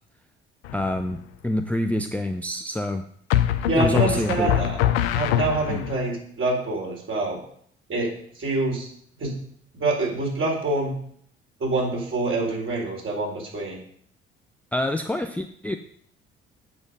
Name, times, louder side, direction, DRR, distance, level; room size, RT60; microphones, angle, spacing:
sound 1, 0.6-1.2 3.3-6.0, left 11 dB, 70° left, 0.7 m, -24 dB
voice 1, 0.7-3.1 3.8-4.5 5.7-5.8 14.7-15.8, left 1 dB, 5° left, 6 dB, 0.6 m, -26 dB
voice 2, 3.7-4.8 5.1-7.4 7.9-8.1 8.3-8.9 9.2-9.3 9.7-10.9 11.6-13.8, right 2 dB, 40° right, -2 dB, 4.4 m, -26 dB
8.1 x 7.0 x 5.3 m, 0.63 s
figure-of-eight pair, 50°, 31 cm